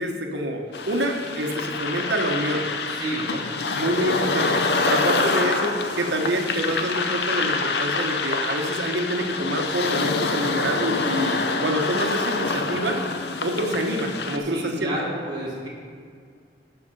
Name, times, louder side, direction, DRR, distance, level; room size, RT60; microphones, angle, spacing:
voice 1, 0.0-2.7 3.3-3.4 3.7-13.0 13.4-15.0, right 1 dB, 75° right, 3 dB, 1.1 m, -26 dB
sound 1, 0.7-14.4, left 3 dB, 65° left, 0.6 m, -26 dB
voice 2, 2.9-3.3 14.4-15.7, right 1 dB, 25° right, -7 dB, 2.5 m, -30 dB
12.0 x 5.5 x 5.4 m, 2.2 s
head